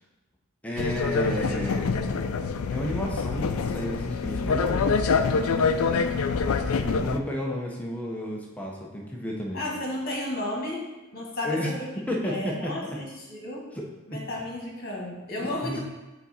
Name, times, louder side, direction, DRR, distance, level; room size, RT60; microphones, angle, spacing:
voice 1, 0.6-1.9 2.7-6.1 6.8-9.6 11.4-11.7 12.0-13.0 13.7-13.8 14.1-14.2 15.4-15.8, left 1 dB, 5° left, -2 dB, 0.7 m, -32 dB
sound 1, 0.8-7.2, left 5 dB, 70° left, 0.4 m, -26 dB
voice 2, 1.2-1.7 9.5-10.9 11.1-11.9 12.2-13.7 14.1-15.8, left 1 dB, 45° left, -2 dB, 1.7 m, -33 dB
7.0 x 4.0 x 4.2 m, 1.1 s
head